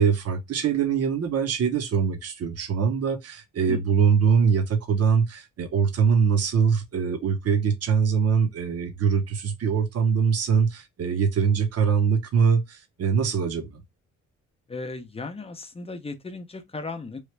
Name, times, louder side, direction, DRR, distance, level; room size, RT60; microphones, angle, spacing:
voice 1, 0.0-13.8, right 6 dB, 55° right, 0.9 m, -23 dB
voice 2, 3.7-4.0 14.7-17.2, left 3 dB, 20° left, 0.7 m, -36 dB
3.1 x 2.3 x 3.2 m
cardioid pair, 90°, 30 cm